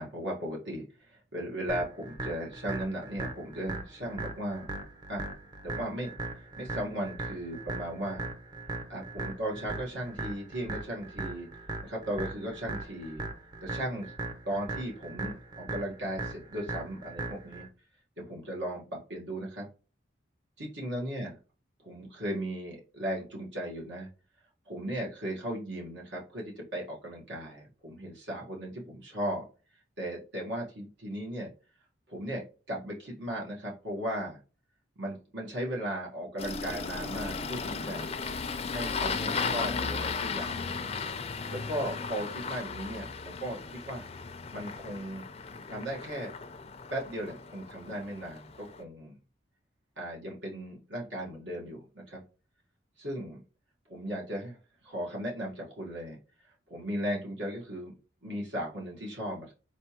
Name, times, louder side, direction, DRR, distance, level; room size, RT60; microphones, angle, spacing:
voice 1, 0.0-4.7 5.1-5.3 5.6-6.1 6.4-8.3 8.9-11.5 11.8-13.2 13.6-14.1 14.5-17.6 18.2-19.7 20.6-21.3 21.8-24.1 24.7-29.4 30.0-31.5 32.1-34.4 35.0-38.2 38.7-40.8 41.5-44.1 44.5-45.2 45.7-46.3 46.9-49.2 50.0-52.2 53.0-53.4 53.9-54.6 54.8-56.2 56.7-57.9 58.2-59.5, right 1 dB, 75° right, -3 dB, 1.5 m, -36 dB
sound 1, 1.7-17.7, right 2 dB, 25° right, 0.6 m, -39 dB
Engine starting, 36.4-48.8, left 5 dB, 30° left, 0.4 m, -36 dB
4.4 x 3.3 x 2.9 m, 0.35 s
head